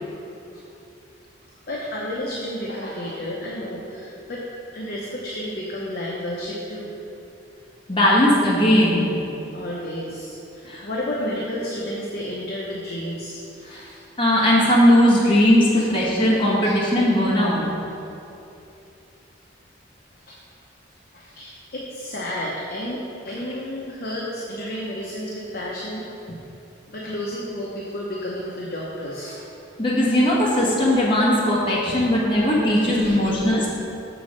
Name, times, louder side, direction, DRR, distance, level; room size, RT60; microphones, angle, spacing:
voice 1, 1.7-4.4 4.7-6.9 9.5-14.0 15.7-15.9 16.6-16.8 20.3-20.4 21.1-26.4 26.9-29.4 31.9-32.0 32.3-33.4, left 1 dB, 50° left, -4 dB, 0.8 m, -32 dB
voice 2, 7.9-9.1 10.6-10.8 13.7-13.9 14.2-17.6 29.8-33.7, left 1 dB, 25° left, -6 dB, 1.2 m, -18 dB
6.9 x 4.1 x 6.3 m, 2.8 s
head